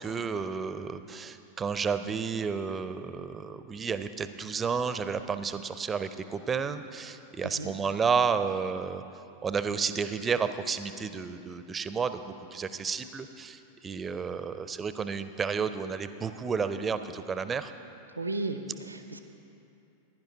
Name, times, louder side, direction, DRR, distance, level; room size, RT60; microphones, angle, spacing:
voice 1, 0.0-9.0 9.4-17.7, right 6 dB, 20° right, 11 dB, 0.5 m, -31 dB
voice 2, 7.4-7.7 18.2-19.2, right 2 dB, 80° right, 8 dB, 0.6 m, -35 dB
15.5 x 10.5 x 3.9 m, 2.7 s
figure-of-eight pair, 90°, 0 cm